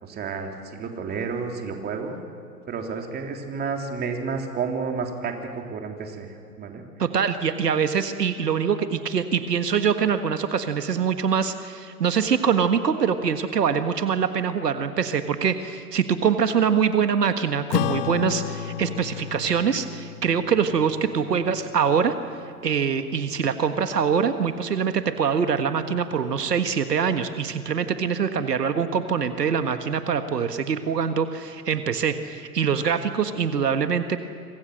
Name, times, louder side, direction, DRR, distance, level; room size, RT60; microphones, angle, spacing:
voice 1, 0.0-2.2 2.7-6.8, right 5 dB, 20° right, 3 dB, 3.1 m, -31 dB
voice 2, 7.0-22.2 22.6-34.2, right 7 dB, 80° right, 9 dB, 1.7 m, -24 dB
Acoustic guitar / Strum, 17.7-22.4, left 11 dB, 35° left, 1.3 m, -32 dB
26.5 x 25.5 x 6.5 m, 2.4 s
hypercardioid pair, 115°, 48 cm